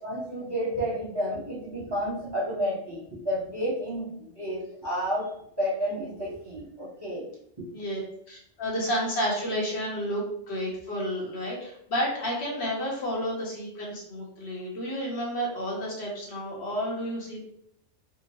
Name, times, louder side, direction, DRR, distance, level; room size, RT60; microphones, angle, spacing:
voice 1, 0.0-4.1 4.3-5.3 5.6-7.2 7.6-7.7, equal, 20° right, -8 dB, 1.0 m, -31 dB
voice 2, 8.3-17.4, equal, 65° left, -3 dB, 1.1 m, -31 dB
3.7 x 2.1 x 2.8 m, 0.69 s
omnidirectional pair, 1.3 m